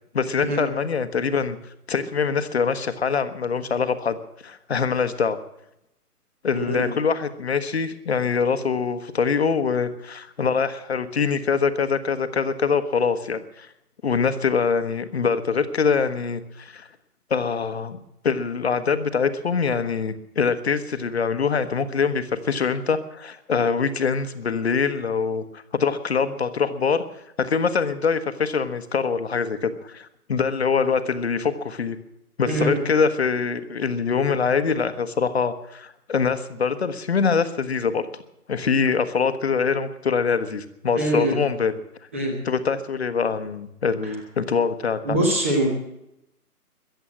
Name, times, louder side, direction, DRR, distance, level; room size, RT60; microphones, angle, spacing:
voice 1, 0.1-1.6 1.9-4.2 4.4-5.4 6.4-13.7 14.0-16.9 17.3-18.0 18.2-27.0 27.4-32.0 32.4-38.1 38.5-41.7 42.4-45.2, left 5 dB, 40° left, 10 dB, 1.2 m, -24 dB
voice 2, 6.5-6.9 32.5-32.7 40.9-41.4 42.1-42.3 44.0-44.1 45.0-45.7, right 1 dB, 10° right, 2 dB, 0.9 m, -23 dB
22.0 x 8.1 x 7.4 m, 0.83 s
hypercardioid pair, 165°, 47 cm